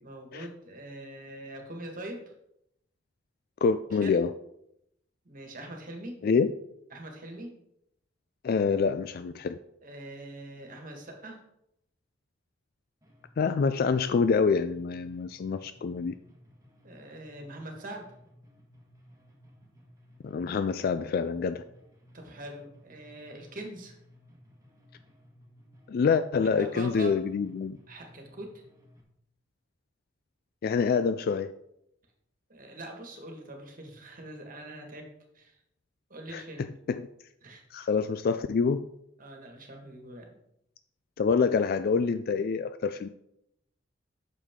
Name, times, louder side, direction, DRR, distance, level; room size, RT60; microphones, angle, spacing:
voice 1, 0.0-2.2 4.0-4.1 5.2-6.2 6.9-7.5 9.8-11.4 16.8-18.0 22.1-24.0 26.4-27.2 27.9-28.5 32.5-35.0 35.3-35.6 36.1-36.7 37.4-37.6 39.2-40.4, right 1 dB, 45° right, 2 dB, 1.7 m, -43 dB
voice 2, 3.6-4.3 6.2-6.5 8.4-9.6 13.4-16.1 20.2-21.6 25.9-27.8 30.6-31.5 36.3-37.1 37.7-38.9 41.2-43.1, left 5 dB, 55° left, 12 dB, 0.3 m, -26 dB
sound 1, 13.0-29.0, equal, 20° right, 1.6 m, -57 dB
8.5 x 6.5 x 3.7 m, 0.79 s
head